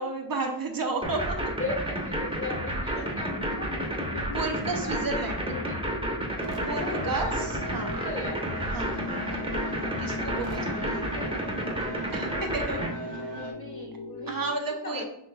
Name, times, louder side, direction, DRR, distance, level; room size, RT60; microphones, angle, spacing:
voice 1, 0.0-1.5 3.0-3.1 4.3-5.4 6.7-7.9 8.7-9.0 10.0-11.2 12.1-13.1 14.3-15.0, right 3 dB, 55° right, 3 dB, 0.7 m, -32 dB
sound 1, 1.0-12.9, right 1 dB, 10° right, 0.9 m, -31 dB
voice 2, 1.6-4.4 4.8-5.0 5.4-5.8 6.8-7.4 7.8-8.5 10.5-11.5 13.3-14.4 14.8-15.0, left 2 dB, 30° left, -1 dB, 1.2 m, -38 dB
sound 2, 3.2-14.5, left 5 dB, 60° left, 0.5 m, -39 dB
sound 3, 6.4-13.5, right 3 dB, 80° right, 1.0 m, -39 dB
5.8 x 3.0 x 2.2 m, 0.75 s
wide cardioid pair, 85°, 43 cm